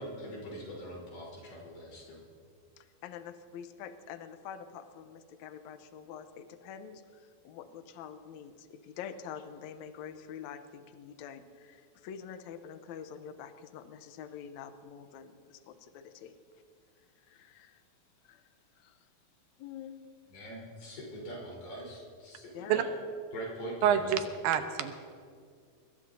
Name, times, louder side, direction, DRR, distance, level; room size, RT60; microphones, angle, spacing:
voice 1, 0.0-2.2 20.3-22.9 23.3-24.2, equal, 90° left, -4 dB, 6.1 m, -42 dB
voice 2, 2.8-16.3 17.3-17.8 18.2-18.4 18.8-19.0 19.6-20.0 22.5-22.8, left 8 dB, 75° left, 9 dB, 1.8 m, -46 dB
voice 3, 23.8-25.0, right 9 dB, 80° right, 7 dB, 2.6 m, -27 dB
24.5 x 21.0 x 2.8 m, 2.1 s
omnidirectional pair, 4.2 m